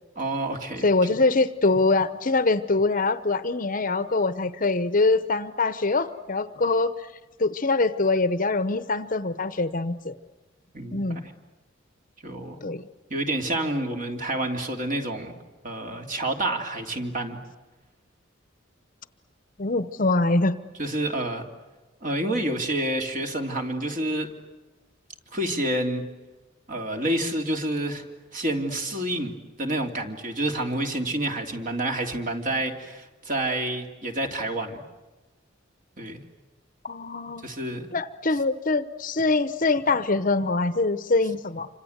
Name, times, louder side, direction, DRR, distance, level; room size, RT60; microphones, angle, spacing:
voice 1, 0.2-0.8 1.1-1.2 10.7-11.3 12.2-12.6 13.1-15.3 15.6-17.4 20.8-21.4 22.0-24.3 25.3-26.0 26.7-28.0 28.3-34.8 36.0-36.2 37.4-37.9, right 1 dB, 40° right, 3 dB, 3.1 m, -28 dB
voice 2, 0.8-6.9 7.4-10.2 10.9-11.2 12.6-12.9 19.6-20.6 36.8-37.5 37.9-41.7, left 3 dB, 45° left, 13 dB, 0.9 m, -24 dB
28.0 x 26.0 x 8.1 m, 1.2 s
head